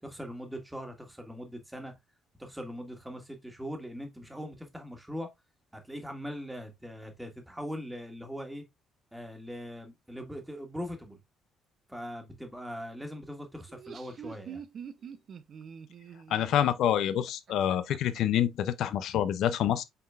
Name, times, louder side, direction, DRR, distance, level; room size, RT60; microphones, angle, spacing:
voice 1, 0.0-1.9 2.4-5.3 5.7-8.6 9.1-11.2 11.9-14.6, equal, 5° right, 1.6 m, -41 dB
Laughter, 13.6-18.2, right 7 dB, 55° right, 0.5 m, -45 dB
voice 2, 16.3-19.8, left 10 dB, 65° left, 0.4 m, -27 dB
5.6 x 3.6 x 2.4 m
hypercardioid pair, 55°, 0 cm